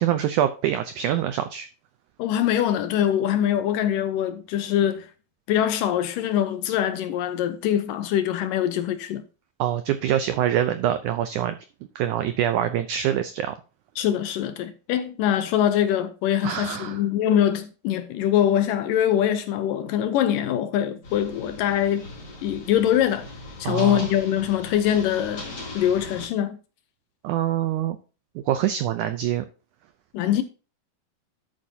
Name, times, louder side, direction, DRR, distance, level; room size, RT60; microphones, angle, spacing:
voice 1, 0.0-1.7 9.6-11.6 11.9-13.5 16.4-17.0 23.6-24.1 27.2-28.0 28.3-29.4, right 11 dB, 85° right, 1.7 m, -25 dB
voice 2, 2.2-5.1 5.5-9.2 14.0-22.1 22.4-23.3 23.6-25.5 25.7-26.6 30.1-30.4, left 10 dB, 75° left, 2.1 m, -23 dB
sound 1, 21.0-26.3, left 2 dB, 30° left, 2.9 m, -40 dB
11.0 x 8.6 x 2.8 m
omnidirectional pair, 4.3 m